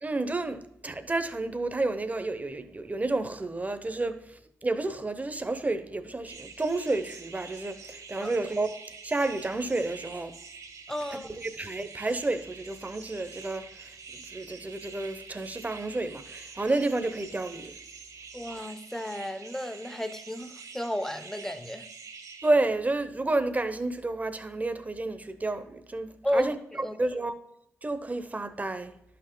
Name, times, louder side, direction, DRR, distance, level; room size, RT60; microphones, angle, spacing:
voice 1, 0.0-8.7 9.0-10.3 11.1-17.7 22.4-27.3 27.8-28.9, right 2 dB, 25° right, 0.9 m, -30 dB
sound 1, 6.3-22.5, right 5 dB, 70° right, 1.5 m, -46 dB
voice 2, 10.9-11.3 18.3-21.9 26.2-27.0, left 1 dB, 5° left, 0.9 m, -33 dB
11.0 x 5.8 x 3.8 m
supercardioid pair, 50°, 6 cm